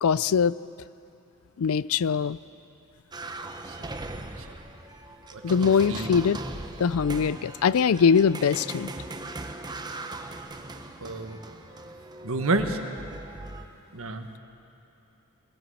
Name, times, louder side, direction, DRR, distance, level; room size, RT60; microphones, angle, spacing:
voice 1, 0.0-0.5 1.6-2.4 5.4-6.4 6.8-8.9, left 6 dB, 70° left, 19 dB, 0.4 m, -22 dB
sound 1, 3.1-13.7, right 2 dB, 20° right, 0.9 m, -39 dB
voice 2, 5.3-6.1 11.0-11.4 12.2-12.8 13.9-14.3, right 2 dB, 65° right, 5 dB, 1.5 m, -29 dB
21.0 x 18.0 x 7.8 m, 2.8 s
head